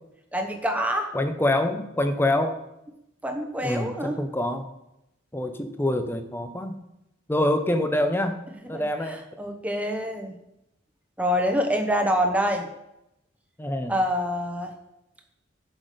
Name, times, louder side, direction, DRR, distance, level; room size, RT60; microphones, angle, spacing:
voice 1, 0.3-1.1 3.2-4.2 8.6-10.4 11.2-12.7 13.9-14.7, equal, 5° right, 3 dB, 1.0 m, -26 dB
voice 2, 1.1-2.6 3.6-4.7 5.3-6.8 7.3-8.4 8.7-9.2 13.6-13.9, left 1 dB, 10° left, 7 dB, 0.7 m, -25 dB
10.5 x 6.0 x 5.1 m, 0.87 s
head